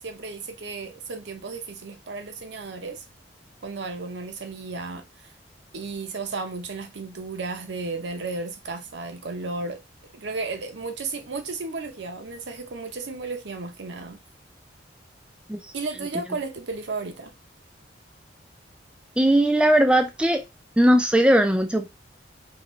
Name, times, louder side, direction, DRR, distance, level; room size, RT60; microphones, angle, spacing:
voice 1, 0.0-3.1 3.6-5.3 5.7-9.8 10.1-14.2 15.7-17.3, right 3 dB, 70° right, 0.7 m, -34 dB
voice 2, 19.2-20.4 20.8-21.9, right 1 dB, 5° right, 0.3 m, -19 dB
3.9 x 3.0 x 3.0 m
head